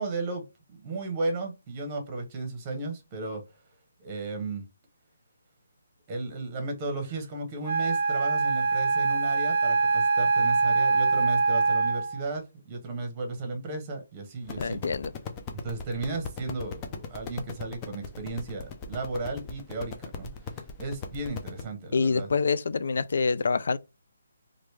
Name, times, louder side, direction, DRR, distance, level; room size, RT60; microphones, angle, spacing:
voice 1, 0.0-3.4 4.0-4.6 6.1-14.8 15.5-22.3, right 3 dB, 20° right, 1.0 m, -34 dB
Wind instrument woodwind instrument, 7.6-12.2, right 4 dB, 50° right, 0.5 m, -24 dB
sound 1, 14.4-21.6, left 5 dB, 20° left, 0.6 m, -39 dB
voice 2, 14.6-15.1 21.9-23.8, left 5 dB, 65° left, 0.4 m, -26 dB
3.0 x 2.6 x 3.2 m
hypercardioid pair, 160°, 0 cm